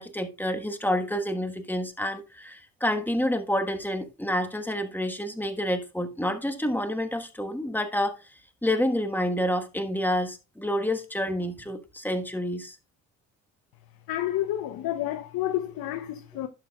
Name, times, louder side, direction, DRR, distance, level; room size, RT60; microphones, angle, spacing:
voice 1, 0.0-8.1 8.6-12.8, left 1 dB, 5° left, 1.3 m, -28 dB
voice 2, 14.1-16.5, left 13 dB, 55° left, 0.8 m, -30 dB
11.5 x 7.1 x 2.3 m
supercardioid pair, 65°, 41 cm